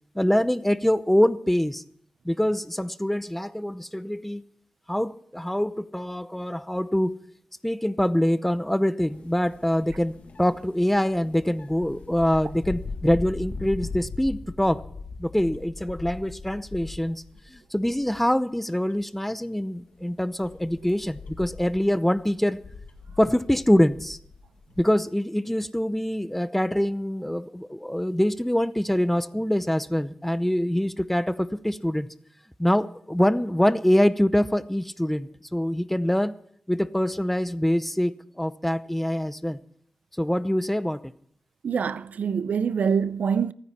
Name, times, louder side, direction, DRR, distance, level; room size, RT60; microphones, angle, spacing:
voice 1, 0.1-1.8 2.2-4.4 4.9-7.2 7.6-14.8 15.2-17.2 17.5-22.6 23.2-24.2 24.8-32.1 32.6-36.3 36.7-38.1 38.4-39.6 40.2-41.0, equal, 5° left, 0.7 m, -24 dB
sound 1, 9.1-17.6 17.9-18.4 18.9-19.0 19.9-24.8, left 4 dB, 70° left, 1.7 m, -40 dB
voice 2, 41.6-43.5, right 6 dB, 80° right, 0.5 m, -25 dB
27.0 x 9.8 x 4.3 m
wide cardioid pair, 90°, 3 cm